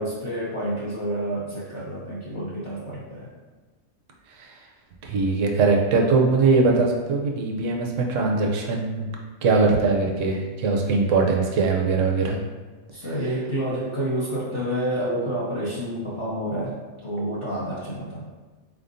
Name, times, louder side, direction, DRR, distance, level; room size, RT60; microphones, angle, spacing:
voice 1, 0.0-3.3 12.9-16.8 17.0-18.3, right 1 dB, 30° left, -10 dB, 0.5 m, -29 dB
voice 2, 5.0-9.1 9.4-12.4, right 4 dB, 70° right, 0 dB, 0.9 m, -21 dB
4.1 x 3.5 x 2.6 m, 1.3 s
omnidirectional pair, 1.5 m